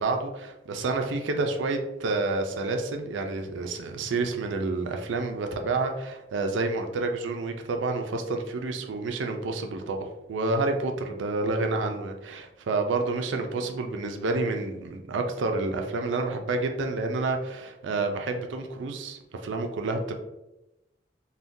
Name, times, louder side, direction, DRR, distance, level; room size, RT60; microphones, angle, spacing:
voice 1, 0.0-20.1, right 3 dB, 90° right, 5 dB, 0.4 m, -29 dB
2.6 x 2.2 x 3.5 m, 0.94 s
head